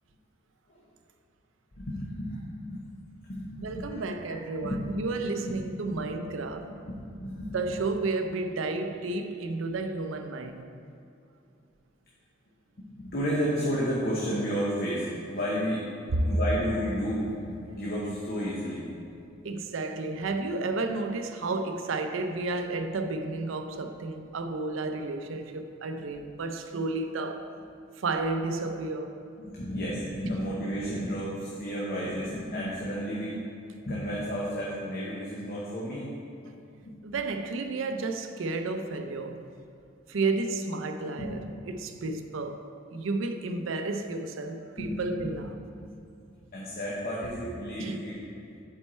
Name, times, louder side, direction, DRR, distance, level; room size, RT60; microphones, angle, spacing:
voice 1, 1.8-2.9 3.3-4.0 4.6-4.8 5.9-6.0 6.9-7.5 12.8-15.9 16.2-18.9 29.4-33.4 33.9-36.1 36.8-36.9 41.2-41.3 44.8-45.3 45.8-45.9 46.5-48.2, equal, 50° left, 0.9 m, -32 dB
voice 2, 3.6-6.7 7.5-10.6 16.1-16.2 19.4-27.5 28.0-29.1 33.3-33.4 36.1-36.2 36.4-36.5 37.0-39.5 40.1-42.6 42.9-45.5 47.8-48.0, right 3 dB, 75° right, 0.5 m, -32 dB
7.5 x 4.5 x 4.2 m
head